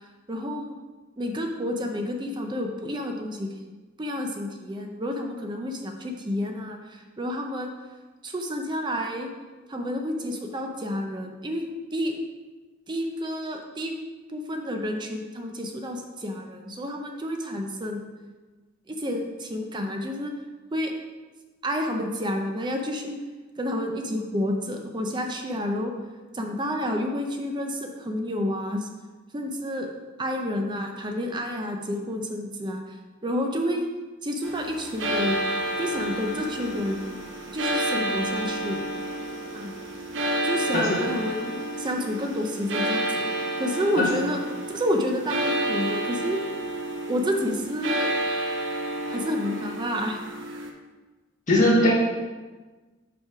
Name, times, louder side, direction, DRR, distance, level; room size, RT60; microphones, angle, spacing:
voice 1, 0.3-0.7 1.2-3.5 4.0-7.7 8.2-9.3 9.7-12.1 12.9-13.9 14.3-18.0 18.9-20.3 20.7-20.9 21.6-23.1 23.6-25.9 26.3-28.9 29.3-29.9 30.2-32.8 33.2-33.9 34.2-35.4 35.8-37.0 37.5-38.9 39.5-39.7 40.4-44.4 44.7-46.4 47.1-48.1 49.1-50.2, left 1 dB, 20° right, 3 dB, 0.6 m, -29 dB
sound 1, 34.4-50.7, right 1 dB, 65° right, 0.8 m, -30 dB
voice 2, 51.5-51.9, left 1 dB, 40° left, -7 dB, 1.5 m, -19 dB
5.4 x 5.3 x 4.8 m, 1.3 s
head